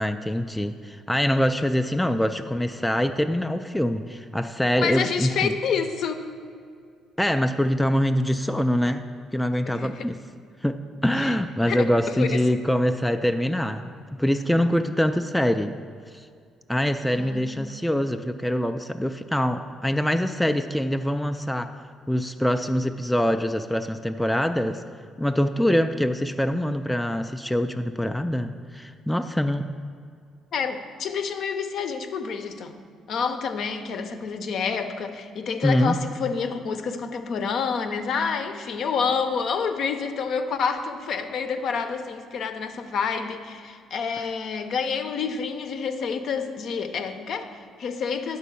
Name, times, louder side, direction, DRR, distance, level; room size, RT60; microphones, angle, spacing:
voice 1, 0.0-5.5 7.2-10.2 10.6-15.7 16.7-21.7 22.1-24.8 25.2-29.7 35.6-36.0, equal, 5° left, 7 dB, 0.3 m, -24 dB
voice 2, 4.8-6.3 9.6-10.1 11.1-11.4 11.6-12.4 17.2-17.8 30.5-32.8 33.1-48.4, left 6 dB, 60° left, 7 dB, 0.6 m, -28 dB
10.0 x 4.1 x 7.0 m, 2.2 s
cardioid pair, 115°, 0 cm